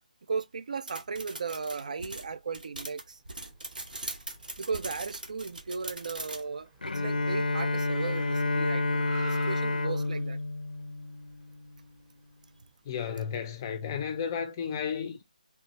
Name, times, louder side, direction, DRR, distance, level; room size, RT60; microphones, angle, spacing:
voice 1, 0.3-3.2 4.6-10.4, right 5 dB, 65° right, 0.4 m, -36 dB
sound 1, 0.9-6.4, right 2 dB, 85° right, 0.9 m, -40 dB
Car, 3.2-12.7, right 4 dB, 10° right, 0.7 m, -52 dB
Bowed string instrument, 6.8-11.8, left 2 dB, 85° left, 0.4 m, -30 dB
voice 2, 12.9-15.2, left 7 dB, 25° left, 0.4 m, -33 dB
3.3 x 2.1 x 2.8 m
figure-of-eight pair, 155°, 4 cm